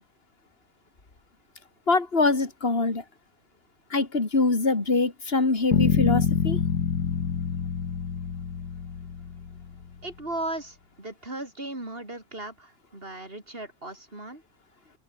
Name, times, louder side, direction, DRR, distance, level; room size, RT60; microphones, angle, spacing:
voice 1, 1.9-3.0 3.9-6.6, left 3 dB, 35° left, 3.5 m, -24 dB
sound 1, 5.7-9.8, left 6 dB, 80° left, 2.5 m, -26 dB
voice 2, 10.0-14.4, right 2 dB, 35° right, 6.1 m, -37 dB
open air
omnidirectional pair, 1.7 m